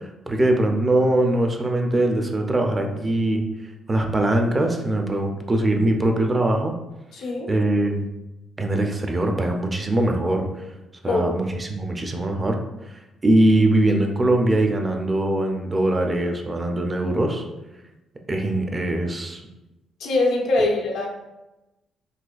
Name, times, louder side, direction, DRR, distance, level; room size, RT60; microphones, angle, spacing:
voice 1, 0.3-3.4 3.9-6.8 7.5-8.1 8.6-10.6 11.0-12.6 13.2-17.4 18.3-19.4, right 1 dB, 25° right, 3 dB, 0.4 m, -21 dB
voice 2, 7.1-7.5 11.0-11.3 20.0-21.1, left 2 dB, 80° left, -1 dB, 0.7 m, -22 dB
4.0 x 2.3 x 2.4 m, 0.99 s
cardioid pair, 90°, 0 cm